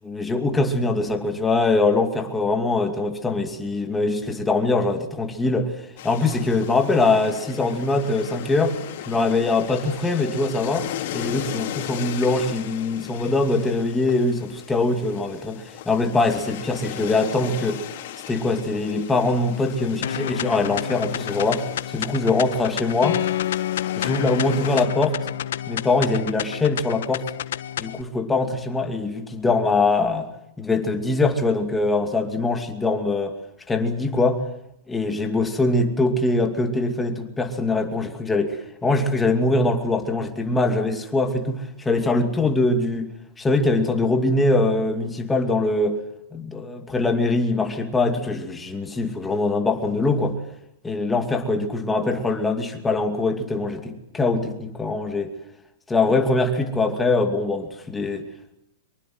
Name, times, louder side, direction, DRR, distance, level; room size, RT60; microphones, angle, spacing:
voice 1, 0.0-5.7 6.0-8.8 9.1-10.9 11.1-17.8 18.3-23.2 23.9-25.2 25.7-27.2 27.8-30.3 30.6-33.4 33.7-34.4 34.9-43.1 43.4-46.0 46.3-50.4 50.8-55.3 55.9-58.3, left 3 dB, 5° left, 4 dB, 2.5 m, -23 dB
sound 1, 6.0-24.9, left 11 dB, 45° left, 4.1 m, -37 dB
sound 2, 20.0-28.0, left 11 dB, 70° left, 1.3 m, -29 dB
24.5 x 23.0 x 7.8 m, 0.77 s
supercardioid pair, 170°, 0 cm